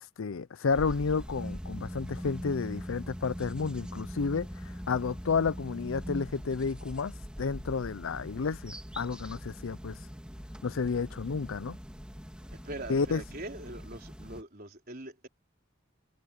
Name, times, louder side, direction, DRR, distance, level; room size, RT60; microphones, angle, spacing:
voice 1, 0.0-4.5 4.9-10.0 10.6-11.8 12.9-13.2, left 5 dB, 75° left, 0.5 m, -31 dB
sound 1, 0.7-14.4, equal, 5° right, 2.9 m, -42 dB
voice 2, 12.6-15.3, right 1 dB, 45° right, 4.1 m, -42 dB
head